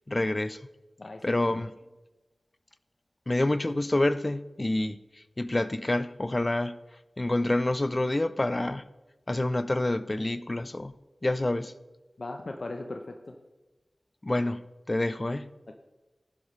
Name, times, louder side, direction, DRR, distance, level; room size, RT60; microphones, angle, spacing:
voice 1, 0.1-0.6 1.2-1.7 3.3-5.0 5.4-6.8 7.2-8.8 9.3-10.9 11.2-11.7 14.2-15.5, left 1 dB, 35° left, 0.6 m, -27 dB
voice 2, 1.0-1.4 12.2-13.4 15.7-15.8, left 2 dB, 65° left, 0.9 m, -38 dB
12.0 x 10.0 x 3.3 m
wide cardioid pair, 50°, 0 cm